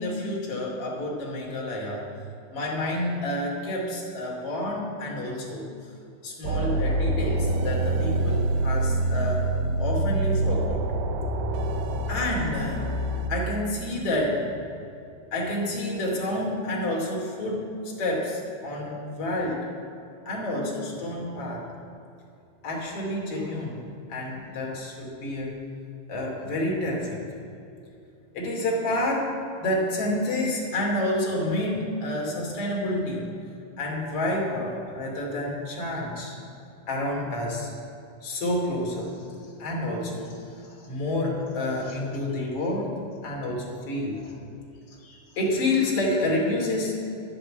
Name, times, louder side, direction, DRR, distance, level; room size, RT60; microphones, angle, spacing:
voice 1, 0.0-2.0 2.5-5.7 6.2-9.5 9.8-10.9 12.1-12.9 13.3-14.5 15.3-19.7 20.2-21.7 22.6-23.8 24.1-25.5 26.1-27.2 28.3-33.3 33.8-36.3 36.9-37.7 38.2-39.2 39.6-44.3 45.0-46.9, left 1 dB, 35° left, -3 dB, 2.9 m, -29 dB
sound 1, 6.4-13.3, right 2 dB, 85° right, 2.1 m, -26 dB
11.5 x 8.7 x 8.7 m, 2.7 s
omnidirectional pair, 5.5 m